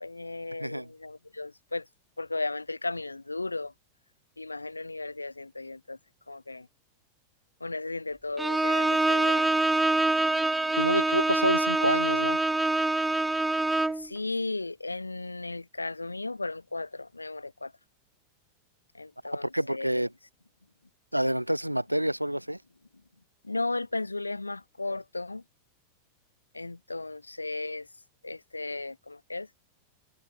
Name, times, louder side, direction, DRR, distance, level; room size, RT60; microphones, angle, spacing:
voice 1, 0.0-1.9 2.2-3.7 4.4-6.0 6.3-6.7 7.6-9.7 13.9-17.7 18.9-19.9 23.4-25.4 26.5-27.9 28.2-29.5, left 2 dB, 80° left, 1.5 m, -35 dB
Bowed string instrument, 8.4-14.1, right 2 dB, 5° right, 1.0 m, -25 dB
voice 2, 10.8-12.4 19.4-20.1 21.1-22.6, right 1 dB, 90° right, 2.3 m, -28 dB
figure-of-eight pair, 90°, 0 cm